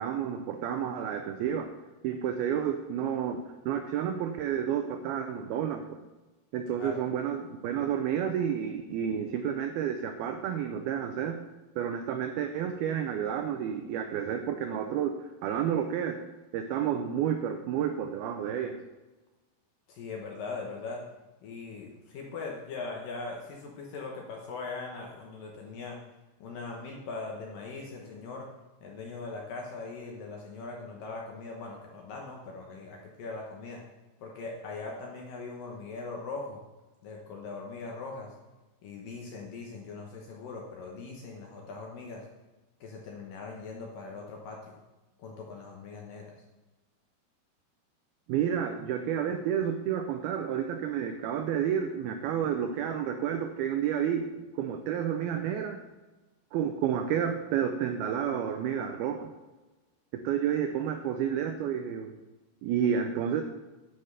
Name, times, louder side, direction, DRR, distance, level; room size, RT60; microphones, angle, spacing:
voice 1, 0.0-1.7 2.0-6.0 6.5-11.4 11.8-15.1 15.4-16.2 16.5-18.8 48.3-55.8 56.5-59.3 60.2-62.1 62.6-63.4, right 8 dB, 90° right, 6 dB, 2.1 m, -30 dB
voice 2, 6.7-7.0 19.9-21.0 21.4-26.0 26.4-28.5 28.8-33.8 34.2-36.6 37.0-38.3 38.8-42.3 42.8-44.8 45.2-46.4, left 3 dB, 70° left, -1 dB, 2.2 m, -40 dB
9.9 x 5.8 x 6.7 m, 1.1 s
omnidirectional pair, 5.2 m